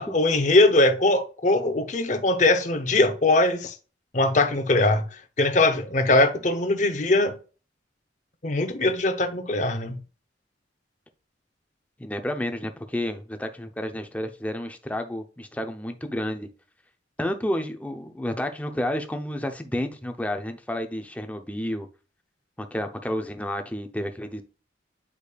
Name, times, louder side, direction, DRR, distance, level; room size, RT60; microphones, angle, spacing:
voice 1, 0.0-3.7 4.1-5.0 5.4-7.3 8.4-10.0, left 2 dB, 40° left, 0.8 m, -21 dB
voice 2, 12.0-16.5 17.2-21.9 22.6-24.4, left 1 dB, 10° left, 0.6 m, -30 dB
8.4 x 5.0 x 2.4 m
head